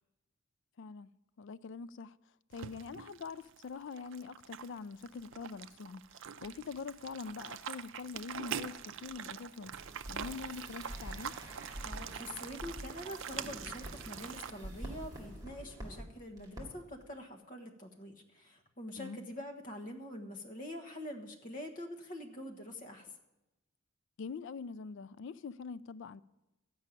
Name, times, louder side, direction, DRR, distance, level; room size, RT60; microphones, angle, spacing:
voice 1, 0.8-1.1 1.4-2.2 2.5-9.8 10.1-11.4 19.0-19.2 24.2-26.2, left 5 dB, 60° left, 0.3 m, -44 dB
sound 1, 2.5-14.5, right 8 dB, 60° right, 0.4 m, -44 dB
sound 2, 9.7-16.0 16.4-16.6 16.9-17.0, right 1 dB, 20° right, 2.1 m, -46 dB
voice 2, 11.8-23.1, left 1 dB, 40° left, 1.3 m, -45 dB
13.0 x 5.4 x 8.9 m
head